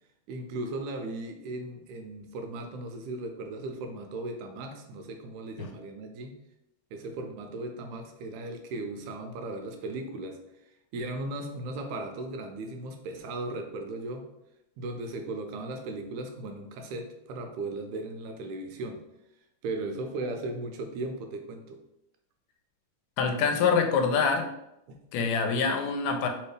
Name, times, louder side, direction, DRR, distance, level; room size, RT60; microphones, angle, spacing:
voice 1, 0.3-6.4 6.9-10.4 10.9-14.3 14.8-19.1 19.6-21.8 24.9-25.3, right 2 dB, 80° right, 4 dB, 1.9 m, -37 dB
voice 2, 23.2-24.5 25.1-26.3, left 5 dB, 85° left, 4 dB, 2.1 m, -25 dB
4.6 x 3.2 x 3.2 m, 0.85 s
omnidirectional pair, 3.6 m